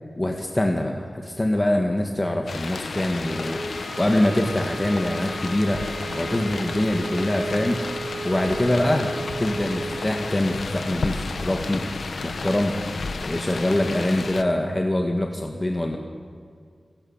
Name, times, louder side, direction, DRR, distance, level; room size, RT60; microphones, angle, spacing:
voice 1, 0.2-5.8 6.2-7.8 8.2-9.1 9.4-11.8 12.2-12.8 13.2-16.0, left 1 dB, 25° left, 3 dB, 1.8 m, -24 dB
sound 1, 2.5-14.4, left 4 dB, 85° left, 1.1 m, -32 dB
sound 2, 3.3-10.3, right 3 dB, 35° right, 2.0 m, -35 dB
29.0 x 12.0 x 7.4 m, 2.1 s
wide cardioid pair, 60°, 0 cm